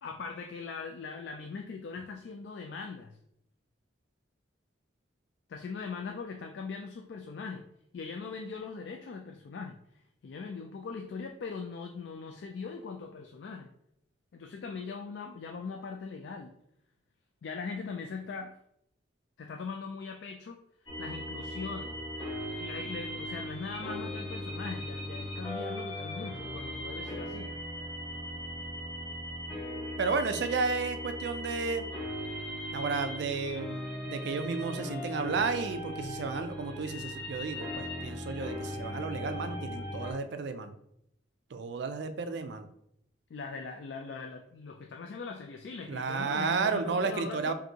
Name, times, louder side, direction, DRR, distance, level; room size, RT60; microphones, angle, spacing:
voice 1, 0.0-3.2 5.5-7.7 7.9-9.8 10.2-13.7 14.3-16.5 17.4-18.5 19.4-20.6 21.0-22.0 22.6-27.5 43.3-47.5, left 4 dB, 60° left, 4 dB, 0.3 m, -40 dB
sound 1, 20.9-40.1, left 1 dB, 20° left, 1.3 m, -38 dB
voice 2, 30.0-31.9 32.7-33.8 34.1-40.7 41.5-42.7 45.9-47.5, right 4 dB, 60° right, 9 dB, 0.3 m, -32 dB
5.2 x 2.6 x 2.8 m, 0.76 s
head